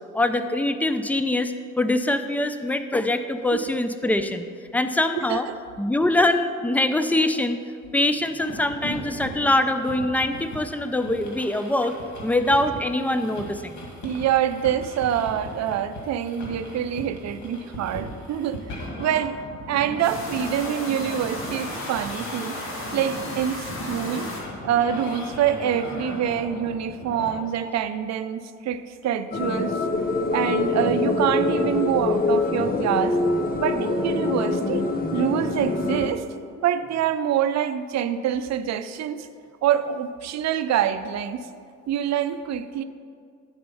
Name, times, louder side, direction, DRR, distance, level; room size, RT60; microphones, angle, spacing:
voice 1, 0.1-4.5 4.7-5.5 5.8-7.6 7.9-12.0 12.2-13.8, left 1 dB, 5° left, 9 dB, 0.4 m, -23 dB
voice 2, 5.2-5.6 14.0-19.4 19.7-22.6 22.9-24.3 24.6-29.9 30.3-33.2 33.6-36.2 36.6-39.3 39.6-41.5 41.9-42.8, right 9 dB, 60° right, 11 dB, 0.5 m, -26 dB
sound 1, 8.4-27.4, equal, 75° left, 2.1 m, -37 dB
sound 2, 20.0-24.4, left 1 dB, 45° left, 1.8 m, -36 dB
sound 3, 29.3-36.1, left 3 dB, 30° left, 0.8 m, -24 dB
9.8 x 4.3 x 5.5 m, 2.2 s
cardioid pair, 90°, 30 cm